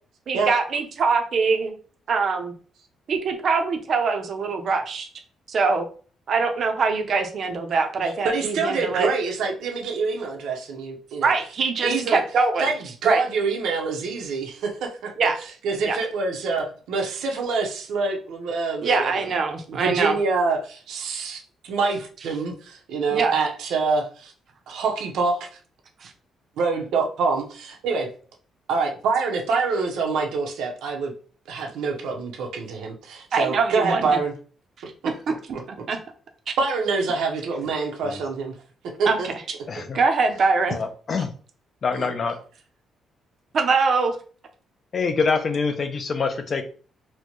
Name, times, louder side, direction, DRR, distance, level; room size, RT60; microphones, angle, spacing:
voice 1, 0.3-1.7 2.1-2.5 3.1-5.1 5.5-5.8 6.3-9.1 11.2-12.7 13.0-13.2 15.2-15.4 15.8-16.0 18.8-20.1 23.1-23.3 26.0-26.1 33.3-34.2 35.7-36.0 39.1-39.3 39.9-40.8 43.5-44.2, right 4 dB, 40° right, 4 dB, 0.5 m, -23 dB
voice 2, 8.2-11.3 11.8-12.2 12.6-15.1 15.6-19.3 19.7-24.3 24.7-25.5 26.6-28.1 28.7-31.1 31.5-34.3 35.0-35.1 35.5-35.6 36.6-38.5 38.8-39.3 39.8-39.9 41.9-42.1, right 4 dB, 85° right, 1 dB, 0.8 m, -26 dB
voice 3, 39.7-40.0 40.7-41.3 41.8-42.4 44.9-46.6, left 4 dB, 30° left, 8 dB, 0.4 m, -25 dB
4.3 x 2.1 x 2.9 m, 0.41 s
cardioid pair, 180°, 0 cm